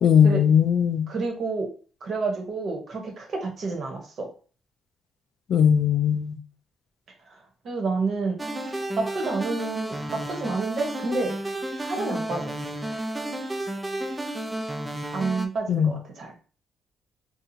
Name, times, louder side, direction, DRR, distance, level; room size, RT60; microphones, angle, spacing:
voice 1, 0.0-1.1 5.5-6.4 15.7-16.0, left 8 dB, 65° left, 0.3 m, -19 dB
voice 2, 1.1-1.7 2.0-4.3 7.3-7.4 7.6-8.4 9.0-11.4 11.8-12.5 15.1-16.3, right 3 dB, 55° right, 0.9 m, -29 dB
sound 1, 8.4-15.5, right 1 dB, 15° right, 0.3 m, -32 dB
2.7 x 2.4 x 2.7 m
cardioid pair, 90°, 0 cm